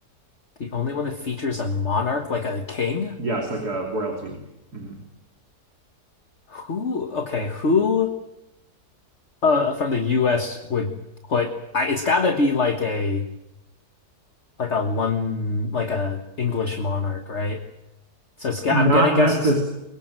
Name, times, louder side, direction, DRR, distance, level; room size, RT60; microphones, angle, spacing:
voice 1, 0.6-3.2 6.5-8.1 9.4-10.9 11.3-13.2 14.6-17.6 18.4-19.5, left 4 dB, 45° left, 6 dB, 1.7 m, -24 dB
voice 2, 3.2-4.4 4.7-5.0 18.7-19.6, right 1 dB, 70° right, 2 dB, 3.5 m, -23 dB
23.5 x 22.5 x 7.6 m, 0.91 s
omnidirectional pair, 1.7 m